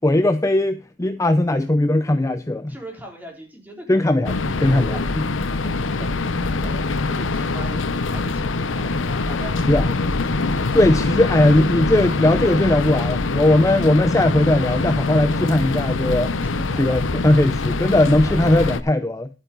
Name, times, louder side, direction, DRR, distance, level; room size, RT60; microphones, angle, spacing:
voice 1, 0.0-2.7 3.9-4.4 4.6-5.0 9.7-9.8 10.7-19.3, left 1 dB, 15° left, 0.5 m, -18 dB
voice 2, 2.7-5.0 5.6-11.1 15.3-15.5 16.4-17.3 17.6-17.8 18.2-18.5, right 1 dB, 10° right, 4.0 m, -40 dB
sound 1, 4.2-18.8, left 3 dB, 80° left, 0.9 m, -24 dB
11.5 x 8.7 x 3.9 m
head